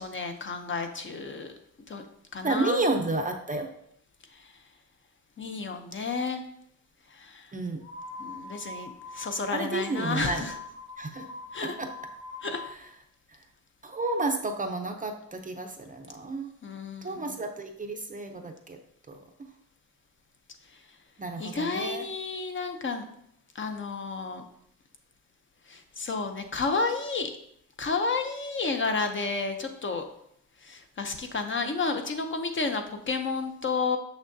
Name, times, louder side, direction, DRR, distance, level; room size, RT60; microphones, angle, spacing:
voice 1, 0.0-1.5 1.9-2.0 2.3-2.8 5.4-6.4 7.2-7.5 8.2-10.5 11.5-11.8 12.4-12.6 16.6-17.3 21.4-23.0 23.6-24.4 25.7-27.3 27.8-30.0 30.6-34.0, left 4 dB, 35° left, 6 dB, 0.6 m, -31 dB
voice 2, 2.4-3.7 7.5-7.8 9.5-10.4 11.0-11.2 11.6-11.9 12.6-12.8 13.8-16.5 17.0-18.8 21.2-22.0, right 2 dB, 25° right, 4 dB, 0.5 m, -31 dB
sound 1, 7.8-12.7, left 2 dB, 85° left, 2.7 m, -43 dB
6.5 x 6.0 x 2.7 m, 0.71 s
wide cardioid pair, 150°, 34 cm